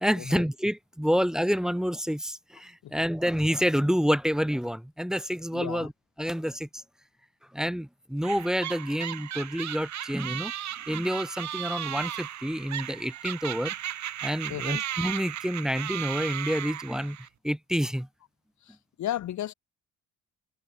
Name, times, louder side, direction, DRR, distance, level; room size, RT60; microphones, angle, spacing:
voice 1, 0.0-5.9 6.2-6.7 7.5-10.5 10.9-13.7 14.2-17.2 17.4-18.1, equal, ahead, 0.7 m, -28 dB
voice 2, 5.5-5.9 14.5-14.8 18.6-19.5, left 12 dB, 70° left, 1.6 m, -34 dB
sound 1, 8.2-17.3, right 11 dB, 65° right, 2.2 m, -35 dB
cardioid pair, 90°, 30 cm